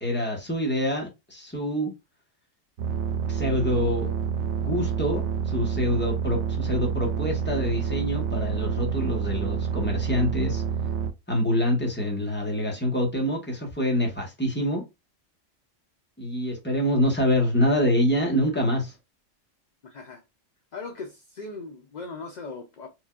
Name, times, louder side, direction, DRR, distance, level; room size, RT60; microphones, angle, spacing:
voice 1, 0.0-1.9 3.3-4.1 4.5-10.6 11.3-14.8 16.2-18.9, equal, 10° left, 1.2 m, -26 dB
sound 1, 2.8-11.1, right 7 dB, 70° right, 0.9 m, -28 dB
voice 2, 19.8-20.2 20.7-22.9, left 3 dB, 55° left, 0.5 m, -39 dB
4.5 x 2.6 x 2.3 m
omnidirectional pair, 1.3 m